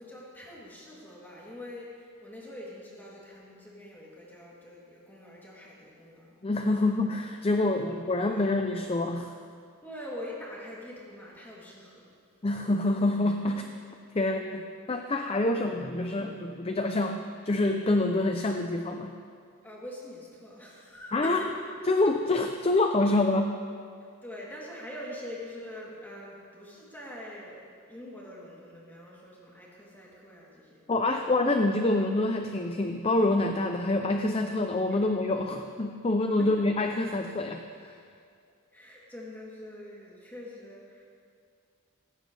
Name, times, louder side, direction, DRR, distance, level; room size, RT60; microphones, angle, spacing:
voice 1, 0.0-6.4 7.7-7.9 8.3-8.6 9.8-12.1 13.4-13.6 19.6-21.6 24.0-30.8 31.2-31.3 34.9-35.0 36.4-36.5 38.7-41.0, left 1 dB, 10° left, -6 dB, 3.0 m, -44 dB
voice 2, 6.4-9.3 12.4-13.6 14.1-19.1 21.1-21.4 21.9-23.6 30.9-38.0, left 2 dB, 25° left, 5 dB, 0.5 m, -26 dB
18.0 x 15.5 x 3.4 m, 2.2 s
head